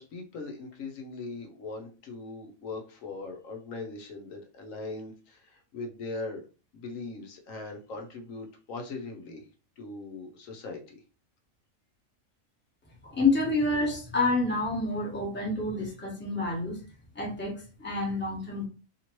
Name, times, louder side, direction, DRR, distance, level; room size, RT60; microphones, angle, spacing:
voice 1, 0.0-6.4 6.7-9.5 9.8-11.0, left 3 dB, 70° left, 3 dB, 1.1 m, -40 dB
voice 2, 13.0-16.8 17.1-18.7, left 3 dB, 10° left, -3 dB, 0.9 m, -28 dB
2.9 x 2.9 x 2.9 m, 0.34 s
omnidirectional pair, 1.5 m